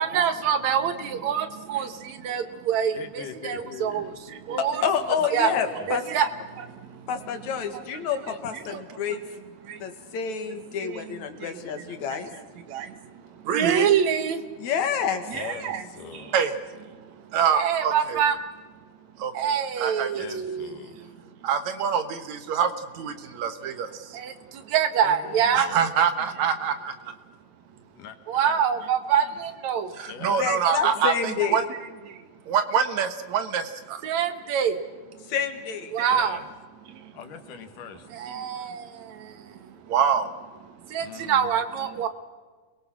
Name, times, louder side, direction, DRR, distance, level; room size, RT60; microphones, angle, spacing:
voice 1, 0.0-4.8 5.3-5.5 5.9-7.1 7.7-7.8 8.7-9.0 9.6-9.8 10.8-12.0 12.3-12.4 12.7-14.7 15.3-15.8 16.1-18.4 19.2-27.1 28.3-31.6 32.0-34.8 35.9-36.4 36.9-37.1 38.1-42.1, right 7 dB, 65° right, 10 dB, 2.5 m, -26 dB
voice 2, 3.0-4.2 5.4-5.9 8.3-8.4 15.3-16.4 20.2-21.1 25.0-25.8 27.9-28.6 30.1-30.5 36.1-36.5 37.1-38.3 41.0-41.5, left 7 dB, 90° left, 8 dB, 3.2 m, -41 dB
voice 3, 4.6-6.0 7.1-9.2 9.8-12.3 14.6-15.3 30.3-31.6 35.3-35.9, left 7 dB, 65° left, 8 dB, 3.1 m, -28 dB
30.0 x 22.0 x 6.0 m, 1.4 s
omnidirectional pair, 3.6 m